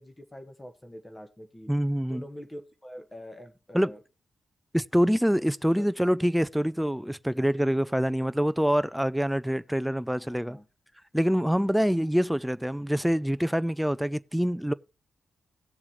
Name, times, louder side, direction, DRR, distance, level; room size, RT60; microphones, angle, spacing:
voice 1, 0.0-1.7 2.1-4.0 5.8-5.9 10.1-10.7, equal, 20° left, 1.6 m, -45 dB
voice 2, 1.7-2.2 3.7-3.9 4.7-10.6 11.1-14.7, equal, 5° right, 0.4 m, -25 dB
17.5 x 7.2 x 3.1 m
supercardioid pair, 50°, 0 cm